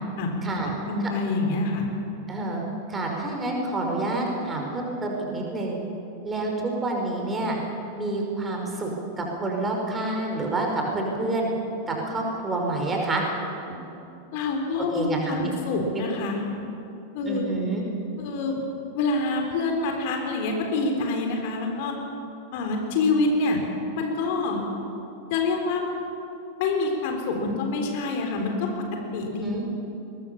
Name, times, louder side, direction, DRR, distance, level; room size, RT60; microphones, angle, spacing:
voice 1, 0.9-1.8 14.3-16.4 17.1-17.6 18.2-18.6 18.9-21.9 22.5-23.6 24.0-24.6 25.3-25.9 26.6-28.7 29.1-29.5, left 3 dB, 50° left, 2 dB, 3.7 m, -26 dB
voice 2, 2.3-2.6 2.9-5.8 6.2-7.6 7.9-8.9 9.2-11.5 11.9-13.2 13.7-13.8 14.9-15.5 15.9-16.0 17.3-17.8 29.4-29.6, right 2 dB, 15° right, 0 dB, 5.3 m, -28 dB
21.5 x 21.5 x 7.3 m, 2.8 s
figure-of-eight pair, 90°, 0 cm